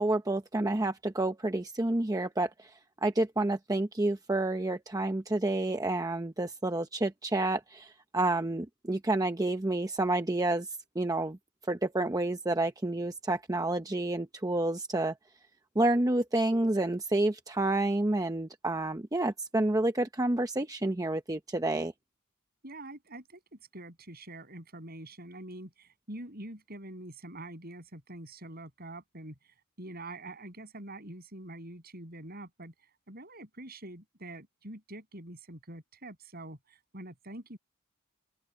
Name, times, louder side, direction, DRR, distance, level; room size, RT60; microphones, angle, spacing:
voice 1, 0.0-2.7 3.0-10.7 10.9-11.4 11.7-15.1 15.8-21.9, right 2 dB, 15° right, 0.8 m, -29 dB
voice 2, 22.6-32.7 33.1-37.6, right 1 dB, 50° right, 7.5 m, -45 dB
open air
head